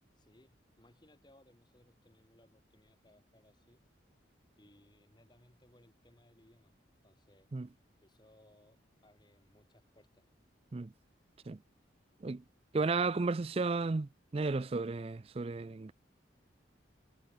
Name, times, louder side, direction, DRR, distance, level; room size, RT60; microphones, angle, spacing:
voice 1, 0.1-3.8 4.6-6.7 7.0-10.3, left 1 dB, 25° left, 3.8 m, -65 dB
voice 2, 12.7-15.9, right 3 dB, 30° right, 0.4 m, -33 dB
head